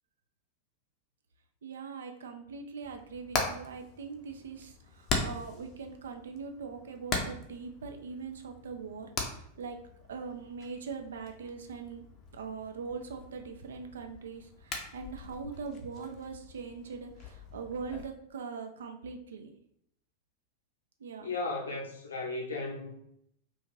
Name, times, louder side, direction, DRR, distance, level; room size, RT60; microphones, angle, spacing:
voice 1, 1.6-9.8 10.1-12.0 12.3-19.5 21.0-21.3, right 5 dB, 65° right, 5 dB, 0.3 m, -41 dB
Hammer, 2.8-18.1, left 3 dB, 30° left, 0.5 m, -40 dB
voice 2, 21.2-23.0, left 3 dB, 70° left, -2 dB, 0.7 m, -35 dB
2.5 x 2.4 x 3.0 m, 0.73 s
figure-of-eight pair, 90°, 0 cm